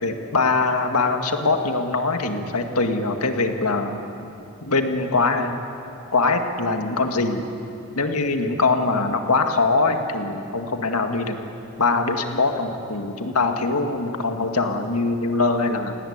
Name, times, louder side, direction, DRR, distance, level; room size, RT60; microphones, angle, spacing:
voice 1, 0.0-4.1 4.6-5.6 6.1-7.5 8.0-11.4 11.8-15.9, left 3 dB, 85° left, 5 dB, 2.0 m, -22 dB
28.0 x 18.5 x 8.8 m, 2.8 s
head